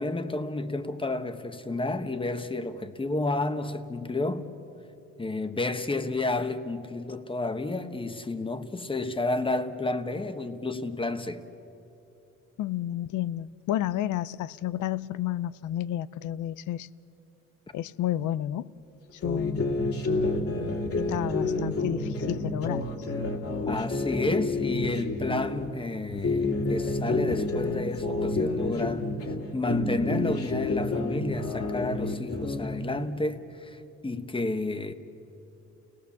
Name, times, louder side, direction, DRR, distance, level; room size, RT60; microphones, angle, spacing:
voice 1, 0.0-4.5 5.2-11.4 23.6-29.1 29.5-34.9, left 2 dB, 15° left, 1.3 m, -31 dB
voice 2, 12.6-16.9 17.7-18.7 19.2-19.7 21.0-22.8, left 12 dB, 80° left, 0.6 m, -31 dB
sound 1, 19.2-25.7 26.1-29.4 29.7-32.8, left 2 dB, 50° left, 2.7 m, -29 dB
30.0 x 18.5 x 7.1 m
cardioid pair, 90°, 30 cm